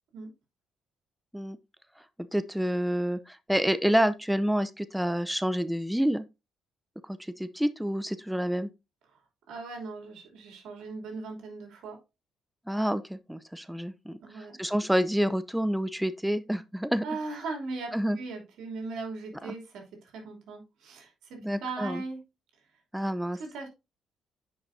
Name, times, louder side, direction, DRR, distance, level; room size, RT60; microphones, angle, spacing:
voice 1, 2.3-6.2 7.1-8.7 12.7-17.0 17.9-18.2 19.4-19.5 21.4-22.0 22.9-23.4, equal, 5° right, 0.5 m, -28 dB
voice 2, 9.5-12.0 14.2-14.6 17.0-22.2 23.3-23.7, right 3 dB, 80° right, 2.9 m, -39 dB
9.4 x 5.2 x 2.6 m
cardioid pair, 90°, 0 cm